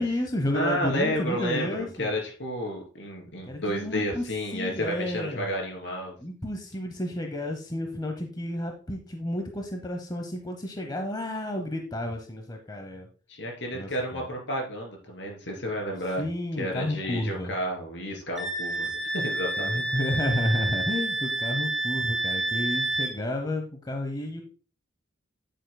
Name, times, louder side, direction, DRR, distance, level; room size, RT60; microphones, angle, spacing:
voice 1, 0.0-2.1 3.5-4.2 4.5-5.5 6.2-13.1 13.7-14.2 16.2-17.5 19.6-24.4, left 1 dB, 20° left, 4 dB, 0.8 m, -31 dB
voice 2, 0.5-6.2 13.3-16.2 16.6-19.8, equal, 65° left, 1 dB, 3.1 m, -31 dB
Wind instrument woodwind instrument, 18.4-23.2, right 2 dB, ahead, 1.8 m, -29 dB
9.2 x 8.8 x 2.2 m, 0.38 s
head